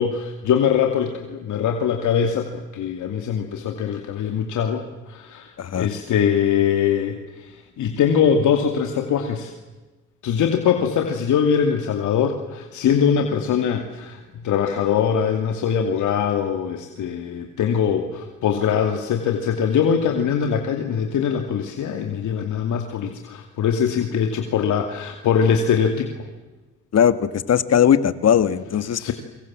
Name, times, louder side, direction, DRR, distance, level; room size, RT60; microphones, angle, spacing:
voice 1, 0.0-9.5 10.2-26.3 29.0-29.1, left 7 dB, 75° left, 4 dB, 2.7 m, -22 dB
voice 2, 5.6-5.9 26.9-29.1, left 9 dB, 55° left, 12 dB, 1.9 m, -19 dB
28.0 x 24.5 x 7.6 m, 1.2 s
cardioid pair, 90°, 30 cm